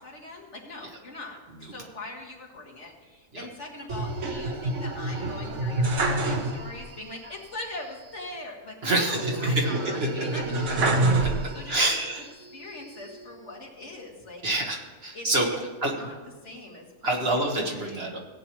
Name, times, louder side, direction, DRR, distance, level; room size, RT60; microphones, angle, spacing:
voice 1, 0.0-11.0 11.5-12.0 12.5-14.4 15.1-15.3 16.0-16.2 16.4-18.0, left 2 dB, 60° left, -2 dB, 2.3 m, -41 dB
sound 1, 3.9-6.9 7.2-7.3 9.1-11.9 12.4-13.2, right 2 dB, 70° right, 1.5 m, -27 dB
voice 2, 8.8-9.6 10.0-10.1 11.2-12.3 14.4-15.9 17.0-18.2, right 2 dB, 50° right, 0 dB, 1.8 m, -27 dB
17.5 x 8.8 x 3.1 m, 1.3 s
omnidirectional pair, 1.3 m